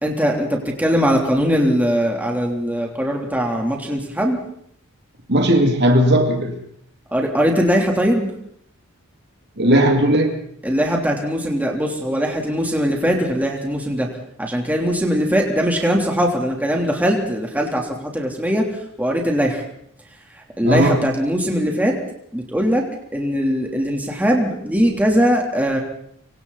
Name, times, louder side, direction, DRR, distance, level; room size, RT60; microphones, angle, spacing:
voice 1, 0.0-4.4 7.1-8.3 10.6-14.1 14.4-19.6 20.6-22.0 22.3-22.9 23.1-25.8, equal, 5° right, 0 dB, 3.4 m, -20 dB
voice 2, 5.3-6.5 9.6-10.3 20.6-20.9, equal, 50° right, 3 dB, 2.7 m, -16 dB
25.5 x 25.5 x 4.2 m, 0.67 s
head